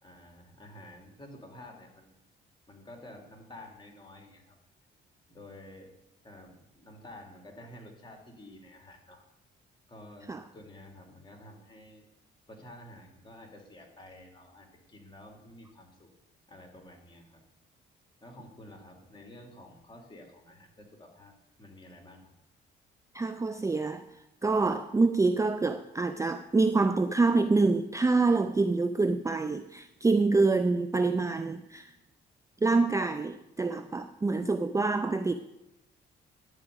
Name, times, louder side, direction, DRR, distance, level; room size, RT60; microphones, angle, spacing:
voice 1, 0.0-2.2 2.7-4.6 5.3-5.9 6.2-9.2 9.9-12.0 12.5-16.1 16.5-17.4 18.2-22.3, left 1 dB, 25° left, 2 dB, 2.7 m, -50 dB
voice 2, 23.1-24.0 24.4-31.9 32.6-35.3, right 3 dB, 15° right, 9 dB, 0.4 m, -26 dB
11.0 x 4.9 x 8.0 m, 0.87 s
cardioid pair, 90°, 20 cm